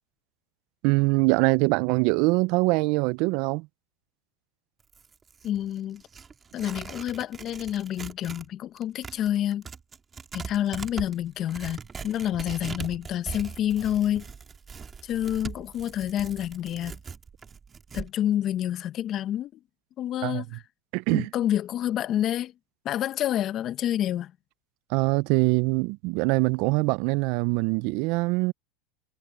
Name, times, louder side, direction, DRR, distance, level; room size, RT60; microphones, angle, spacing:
voice 1, 0.8-3.7 20.2-20.4 20.9-21.3 24.9-28.5, right 26 dB, 60° right, 0.5 m, -23 dB
Tearing, 4.8-8.5 8.8-18.1, right 6 dB, 20° right, 3.2 m, -41 dB
voice 2, 5.4-6.0 6.5-9.7 10.3-14.3 15.0-17.0 17.9-19.6 20.0-20.6 21.1-22.5 22.8-24.3, left 11 dB, 40° left, 0.9 m, -28 dB
supercardioid pair, 115°, 0 cm